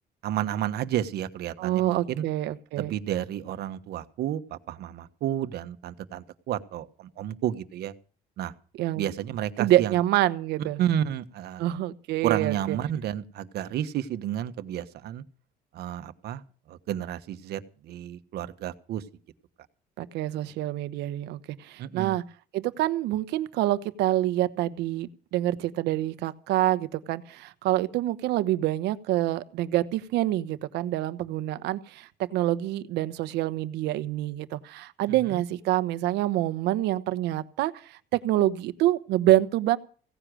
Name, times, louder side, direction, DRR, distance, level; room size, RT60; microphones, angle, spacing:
voice 1, 0.2-2.2 2.8-7.9 8.4-8.5 9.0-10.0 10.6-11.6 12.2-15.2 15.7-16.4 16.7-19.0 21.8-22.2 35.2-35.4, right 11 dB, 70° right, 10 dB, 1.3 m, -31 dB
voice 2, 1.6-2.9 8.8-9.1 9.6-10.8 11.6-12.8 20.0-22.2 22.5-39.8, right 14 dB, 85° right, 13 dB, 1.1 m, -26 dB
17.0 x 10.0 x 6.3 m, 0.41 s
cardioid pair, 110°, 17 cm